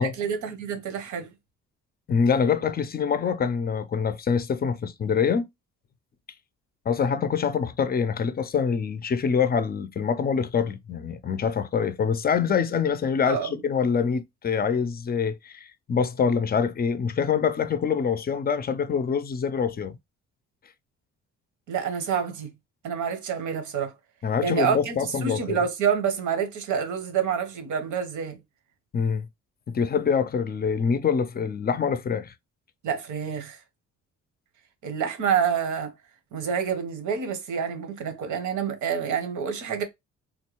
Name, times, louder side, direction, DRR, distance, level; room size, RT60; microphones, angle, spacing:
voice 1, 0.0-1.3 13.2-13.6 21.7-22.5 22.8-23.9 24.4-28.4 32.8-33.6 34.8-35.9 36.3-39.8, right 7 dB, 80° right, 1.0 m, -27 dB
voice 2, 2.1-5.5 6.9-19.9 24.2-25.6 28.9-29.3 29.7-32.3, left 6 dB, 30° left, 0.5 m, -25 dB
3.7 x 2.2 x 3.0 m
cardioid pair, 90°, 30 cm